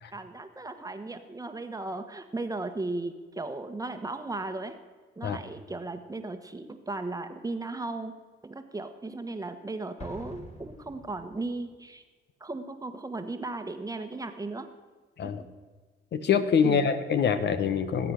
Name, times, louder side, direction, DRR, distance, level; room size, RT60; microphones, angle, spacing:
voice 1, 0.1-4.8 5.2-8.1 8.4-12.0 12.4-14.7 16.6-16.9, right 2 dB, 15° right, 8 dB, 1.3 m, -36 dB
Explosion, 10.0-11.8, left 1 dB, 35° left, 2.1 m, -46 dB
voice 2, 16.1-18.1, left 6 dB, 60° left, 10 dB, 1.1 m, -25 dB
19.5 x 8.4 x 6.4 m, 1.4 s
cardioid pair, 90°, 20 cm